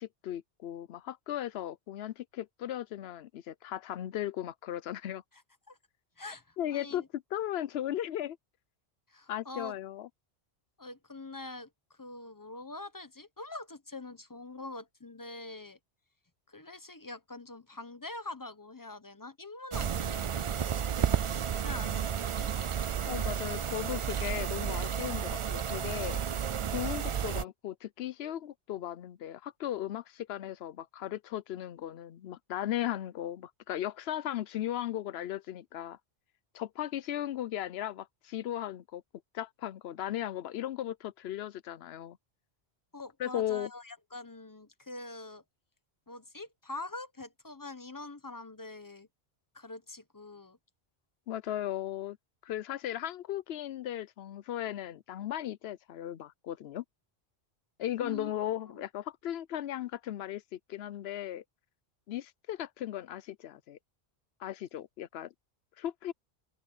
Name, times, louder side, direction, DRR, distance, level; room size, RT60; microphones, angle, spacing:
voice 1, 0.0-5.2 6.6-8.4 9.3-10.1 23.1-26.2 26.7-36.0 36.5-39.0 39.3-42.2 43.2-43.7 51.3-52.2 52.4-56.8 57.8-61.4 62.1-63.8 64.4-65.3 65.8-66.1, left 12 dB, 80° left, 0.8 m, -37 dB
voice 2, 6.2-7.1 9.1-9.8 10.8-15.8 16.5-20.9 21.3-22.5 42.9-45.4 46.1-49.1 49.5-50.6 58.0-58.3 58.6-58.8, left 2 dB, 20° left, 0.9 m, -44 dB
sound 1, 19.7-27.4, right 8 dB, 50° right, 0.3 m, -32 dB
open air
omnidirectional pair, 1.1 m